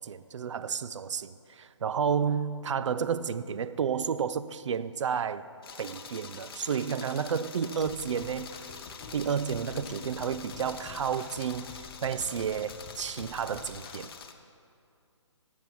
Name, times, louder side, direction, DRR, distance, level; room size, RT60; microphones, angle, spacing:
voice 1, 0.0-5.4 5.8-8.5 9.1-14.1, right 7 dB, 75° right, 0.4 m, -31 dB
sound 1, 5.6-14.3, left 6 dB, 50° left, 0.7 m, -46 dB
sound 2, 7.8-14.0, left 5 dB, 15° left, 0.4 m, -49 dB
Laughter, 8.5-13.0, equal, 30° right, 2.2 m, -51 dB
8.3 x 7.3 x 6.0 m
hypercardioid pair, 160°, 16 cm